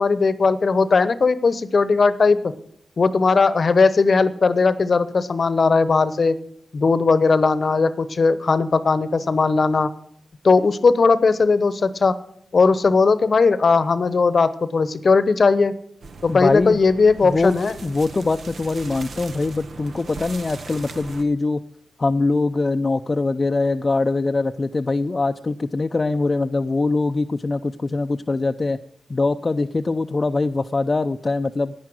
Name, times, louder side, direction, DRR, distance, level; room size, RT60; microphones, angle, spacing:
voice 1, 0.0-2.5 3.0-6.4 6.7-9.9 10.4-12.1 12.5-15.7 16.2-17.7, left 4 dB, 60° left, 15 dB, 0.9 m, -18 dB
sound 1, 16.0-21.2, right 4 dB, 70° right, 1.0 m, -39 dB
voice 2, 16.3-16.8 17.2-17.5 17.8-21.6 22.0-28.8 29.1-31.7, left 3 dB, 45° left, 7 dB, 0.5 m, -22 dB
10.5 x 9.5 x 6.3 m, 0.69 s
supercardioid pair, 40°, 0 cm